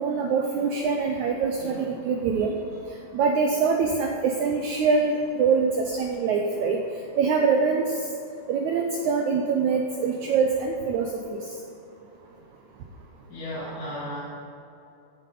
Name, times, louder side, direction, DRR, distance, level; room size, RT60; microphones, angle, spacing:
voice 1, 0.0-2.5 3.1-6.8 7.2-7.8 8.5-11.4, right 5 dB, 85° right, 3 dB, 1.7 m, -24 dB
voice 2, 13.3-14.2, equal, 75° left, -10 dB, 4.5 m, -35 dB
14.5 x 7.5 x 5.4 m, 2.7 s
omnidirectional pair, 4.3 m